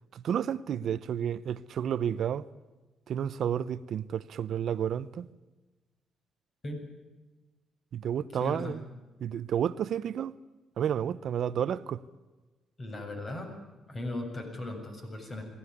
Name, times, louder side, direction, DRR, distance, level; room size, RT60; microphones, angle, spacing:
voice 1, 0.1-2.5 3.1-5.3 7.9-8.8 9.2-10.3 10.8-12.0, right 9 dB, 65° right, 0.7 m, -31 dB
voice 2, 8.3-8.7 12.8-13.5 13.9-15.4, left 2 dB, 35° left, 7.5 m, -37 dB
22.0 x 17.0 x 9.6 m
cardioid pair, 90°, 0 cm